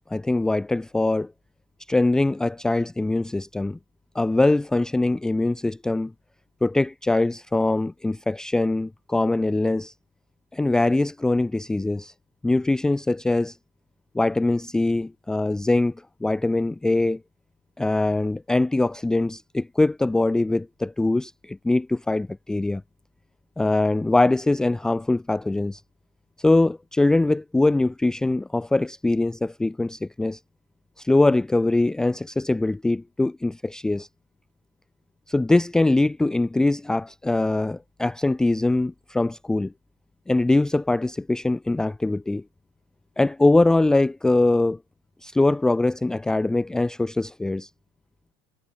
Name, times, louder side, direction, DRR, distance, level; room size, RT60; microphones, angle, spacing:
voice 1, 0.1-1.3 1.9-3.8 4.1-6.1 6.6-9.9 10.5-12.1 12.4-13.6 14.1-17.2 17.8-22.8 23.6-25.8 26.4-30.4 31.0-34.1 35.3-39.7 40.3-42.4 43.2-44.8 45.2-47.7, left 2 dB, 5° left, 0.5 m, -22 dB
cardioid pair, 155°, 12 cm